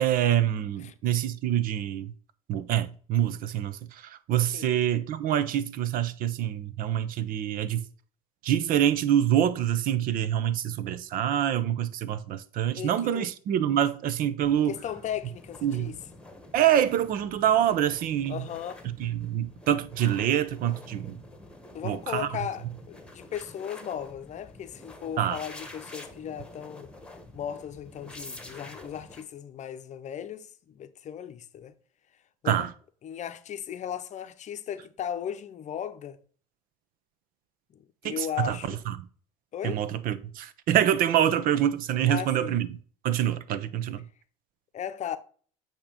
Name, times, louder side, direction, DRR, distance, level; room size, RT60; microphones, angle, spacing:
voice 1, 0.0-2.1 2.5-7.9 8.4-14.7 15.6-15.9 16.5-18.5 19.0-21.2 21.8-22.3 25.2-25.4 32.4-32.7 38.0-38.6 38.9-39.0 39.6-42.7 43.0-44.0, right 10 dB, 55° right, 0.7 m, -26 dB
voice 2, 12.8-13.3 14.7-16.0 18.3-18.9 21.7-26.9 27.3-31.7 32.4-32.7 33.0-36.2 38.0-38.8 39.5-39.8 42.0-42.5 44.7-45.2, left 9 dB, 40° left, 0.7 m, -36 dB
sound 1, 14.4-29.2, left 2 dB, 5° left, 1.4 m, -48 dB
8.5 x 2.9 x 5.1 m
hypercardioid pair, 80°, 18 cm